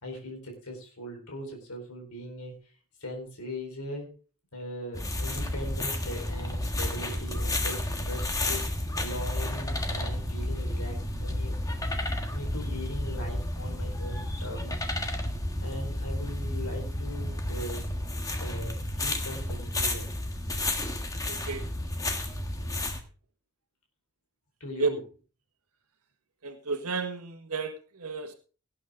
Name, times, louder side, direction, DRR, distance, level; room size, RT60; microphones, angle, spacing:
voice 1, 0.0-2.6 3.0-4.1 4.5-11.6 12.3-15.0 15.6-17.9 18.4-20.1 22.6-22.8 24.6-25.0, equal, 90° left, 2 dB, 4.2 m, -40 dB
sound 1, 4.9-23.0, left 1 dB, 15° left, 1.5 m, -31 dB
voice 2, 21.2-21.7 24.8-24.9 26.4-28.3, right 4 dB, 85° right, 4 dB, 1.6 m, -32 dB
18.0 x 8.5 x 3.7 m, 0.37 s
head